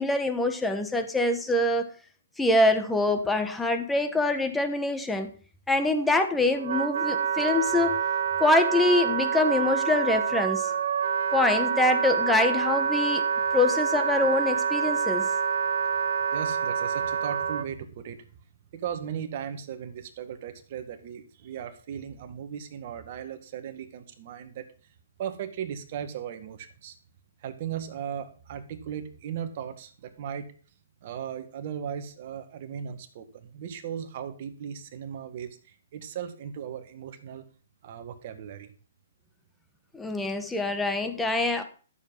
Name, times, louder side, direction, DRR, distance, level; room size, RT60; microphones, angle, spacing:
voice 1, 0.0-1.9 2.4-5.3 5.7-8.0 8.4-10.7 11.3-13.2 13.5-15.3 39.9-41.6, left 2 dB, 5° left, 7 dB, 1.3 m, -25 dB
Wind instrument woodwind instrument, 6.1-17.7, right 6 dB, 65° right, 0.9 m, -27 dB
voice 2, 16.3-18.3 18.7-24.7 25.2-27.0 27.4-30.5 31.0-37.4 37.8-38.7, right 8 dB, 45° right, 7 dB, 1.8 m, -37 dB
12.5 x 7.2 x 5.5 m, 0.40 s
hypercardioid pair, 150°, 0 cm